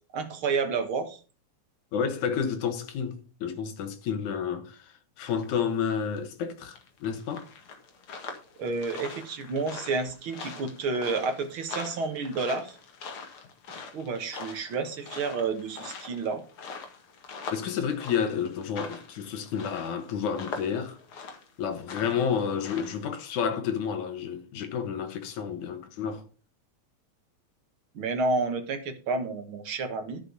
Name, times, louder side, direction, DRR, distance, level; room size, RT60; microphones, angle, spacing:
voice 1, 0.1-1.2 8.6-12.8 13.9-16.4 28.0-30.2, right 4 dB, 50° right, 2.0 m, -30 dB
voice 2, 1.9-7.5 17.5-21.0 21.6-26.2, left 7 dB, 80° left, 2.8 m, -30 dB
sound 1, 5.3-5.6 5.9-6.2 6.8-23.1, left 5 dB, 50° left, 2.4 m, -43 dB
11.5 x 6.6 x 5.3 m
omnidirectional pair, 3.4 m